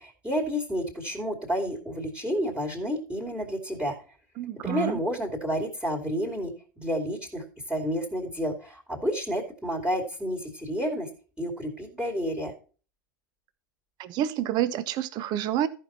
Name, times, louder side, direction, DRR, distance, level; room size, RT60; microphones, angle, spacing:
voice 1, 0.0-4.0 4.6-6.5 6.8-11.1 11.4-12.5, equal, 10° right, 2.6 m, -30 dB
voice 2, 4.4-5.0 14.0-15.7, right 11 dB, 40° right, 0.8 m, -28 dB
14.0 x 5.5 x 4.3 m
hypercardioid pair, 95°, 11 cm